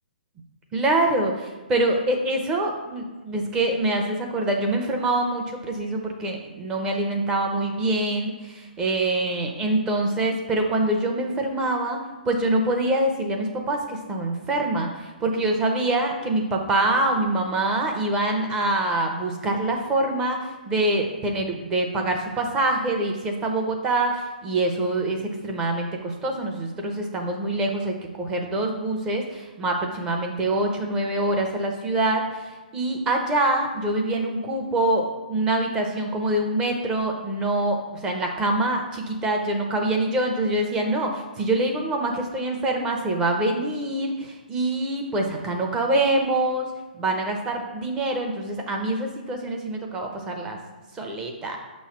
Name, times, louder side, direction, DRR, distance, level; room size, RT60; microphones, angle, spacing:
voice 1, 0.7-12.0 12.2-46.7 47.0-50.6 50.9-51.6, right 2 dB, 10° right, 2 dB, 0.6 m, -25 dB
6.5 x 3.1 x 5.7 m, 1.2 s
hypercardioid pair, 165°, 5 cm